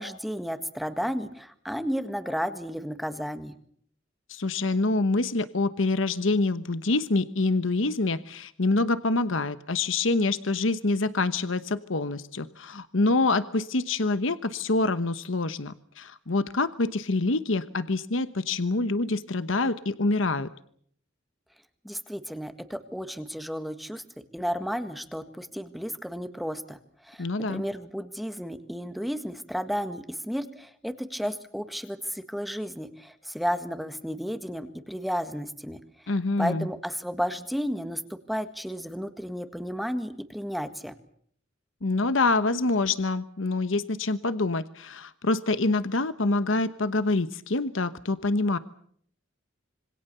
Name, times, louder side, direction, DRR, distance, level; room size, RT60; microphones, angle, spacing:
voice 1, 0.0-3.6 21.8-24.0 24.3-26.8 27.0-35.8 36.0-40.9, equal, ahead, 9 dB, 1.6 m, -33 dB
voice 2, 4.3-20.5 27.2-27.6 36.1-36.7 41.8-48.6, left 3 dB, 80° left, 13 dB, 1.1 m, -26 dB
26.5 x 24.5 x 6.9 m, 0.64 s
head